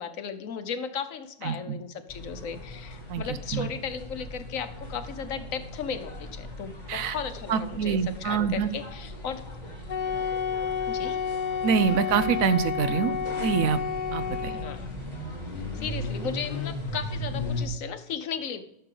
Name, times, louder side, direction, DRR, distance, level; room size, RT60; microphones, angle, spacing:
voice 1, 0.0-9.4 10.9-11.2 14.5-14.9 15.7-18.6, left 7 dB, 75° left, 10 dB, 1.3 m, -35 dB
voice 2, 1.4-1.8 3.1-3.7 6.9-7.2 7.5-8.7 11.6-13.8 14.1-14.6, right 7 dB, 85° right, 13 dB, 1.1 m, -26 dB
sound 1, 2.1-17.7, left 2 dB, 30° left, 2.7 m, -38 dB
Wind instrument woodwind instrument, 9.9-14.8, left 7 dB, 55° left, 0.5 m, -30 dB
11.5 x 6.7 x 3.8 m, 0.79 s
omnidirectional pair, 1.4 m